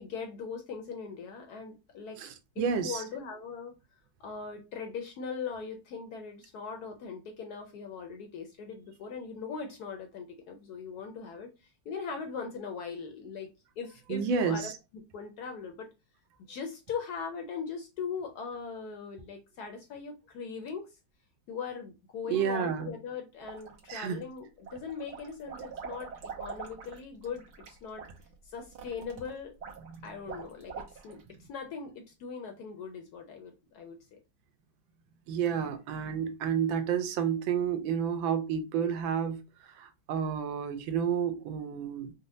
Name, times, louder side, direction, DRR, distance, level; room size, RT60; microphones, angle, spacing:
voice 1, 0.0-2.2 2.6-3.7 4.2-13.5 13.8-14.7 15.1-15.9 16.5-21.0 21.5-26.1 26.4-28.1 28.4-29.5 30.0-34.2, left 5 dB, 70° left, 0.9 m, -40 dB
voice 2, 2.2-3.0 14.1-14.7 22.3-22.9 23.9-24.2 29.9-30.1 35.3-39.4 39.8-42.1, right 7 dB, 85° right, 1.4 m, -30 dB
sound 1, 23.4-24.2 24.6-31.3, right 6 dB, 65° right, 1.3 m, -44 dB
4.1 x 2.1 x 2.6 m
omnidirectional pair, 2.1 m